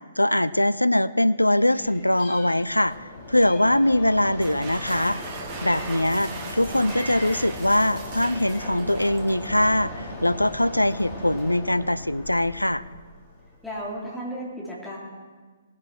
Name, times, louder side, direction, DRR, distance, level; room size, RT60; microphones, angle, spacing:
voice 1, 0.2-3.0 3.3-5.2 5.6-12.8, left 1 dB, 85° left, 16 dB, 0.4 m, -22 dB
Meow, 1.6-3.0 3.4-6.1 6.5-7.5 8.1-8.9, left 2 dB, 40° left, 4.4 m, -45 dB
Mechanisms, 1.8-14.1, left 2 dB, 15° left, 3.9 m, -39 dB
sound 1, 4.2-9.8, right 4 dB, 25° right, 1.6 m, -39 dB
voice 2, 6.4-7.0 13.6-15.0, equal, ahead, -7 dB, 2.7 m, -35 dB
18.5 x 10.5 x 3.3 m, 1.4 s
figure-of-eight pair, 125°, 0 cm